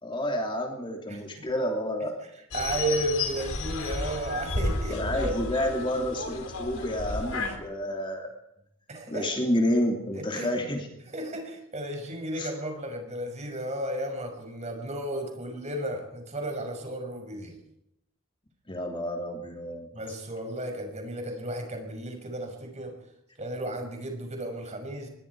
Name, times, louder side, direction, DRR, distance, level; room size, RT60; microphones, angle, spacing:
voice 1, 0.0-2.2 4.9-8.3 9.1-10.9 12.4-12.5 18.7-19.9, left 1 dB, 25° left, 2 dB, 3.1 m, -29 dB
voice 2, 1.1-1.5 2.5-5.3 8.9-9.2 10.1-10.5 11.1-17.5 19.9-22.9 23.4-25.1, right 1 dB, 30° right, 4 dB, 6.3 m, -33 dB
sound 1, 2.5-7.6, left 2 dB, 85° left, 4.3 m, -32 dB
25.5 x 21.5 x 4.9 m, 0.79 s
head